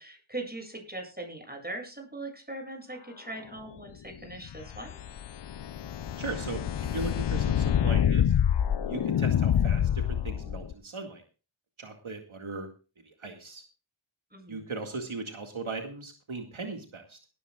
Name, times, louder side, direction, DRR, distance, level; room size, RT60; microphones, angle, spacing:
voice 1, 0.0-5.0 14.3-14.6, right 2 dB, 20° right, 3 dB, 7.9 m, -40 dB
sound 1, 4.4-10.7, left 9 dB, 55° left, 0.6 m, -27 dB
voice 2, 6.2-6.6 6.9-8.3 8.9-11.2 11.8-12.7 13.0-13.6 14.5-17.2, right 3 dB, 75° right, 3 dB, 2.2 m, -38 dB
18.5 x 14.5 x 2.4 m, 0.33 s
wide cardioid pair, 65°, 49 cm